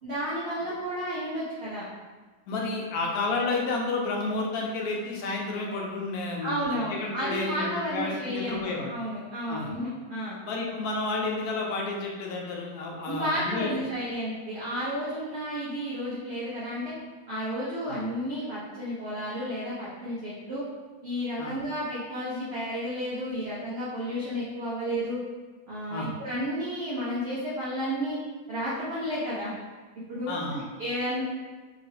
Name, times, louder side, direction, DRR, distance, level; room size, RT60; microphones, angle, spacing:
voice 1, 0.0-1.9 6.4-10.4 13.1-16.9 17.3-20.6 21.0-25.2 25.7-28.2 28.5-29.5 30.1-31.2, equal, 50° right, -10 dB, 0.9 m, -32 dB
voice 2, 2.5-8.9 9.5-9.7 10.4-13.8 17.9-18.0 21.4-21.5 25.9-26.1 30.3-30.6, left 3 dB, 75° left, -1 dB, 1.1 m, -31 dB
3.0 x 2.9 x 2.7 m, 1.3 s
omnidirectional pair, 1.7 m